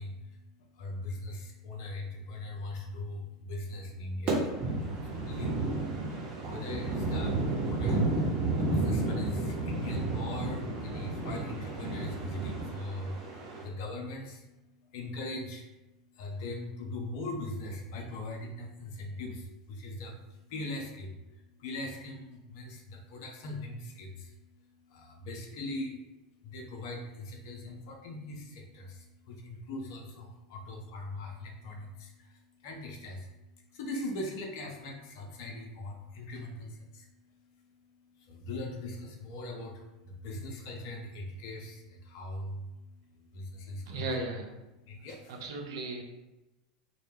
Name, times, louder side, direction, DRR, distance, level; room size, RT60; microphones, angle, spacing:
voice 1, 0.0-44.1 44.8-45.4, left 2 dB, 60° left, 1 dB, 0.4 m, -41 dB
sound 1, 4.3-13.6, right 2 dB, 40° right, 0.8 m, -32 dB
voice 2, 43.9-44.5 45.3-46.0, right 2 dB, 65° right, 2 dB, 0.4 m, -36 dB
2.1 x 2.1 x 3.1 m, 1.0 s
hypercardioid pair, 85°, 2 cm